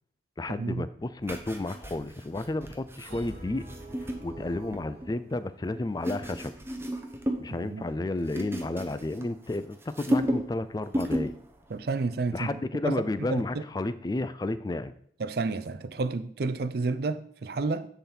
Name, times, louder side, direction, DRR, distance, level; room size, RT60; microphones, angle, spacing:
voice 1, 0.4-3.6 4.2-6.5 7.4-11.3 12.3-14.9, left 2 dB, 20° left, 0.3 m, -32 dB
sound 1, 1.2-5.1 5.7-7.5 7.8-9.6 9.8-10.6 10.9-11.4 11.7-11.9, equal, 15° right, 0.7 m, -33 dB
sound 2, 3.1-6.0, right 1 dB, 35° right, 1.2 m, -46 dB
voice 2, 11.7-13.6 15.2-17.9, right 3 dB, 55° right, 0.4 m, -31 dB
10.0 x 3.9 x 4.3 m
head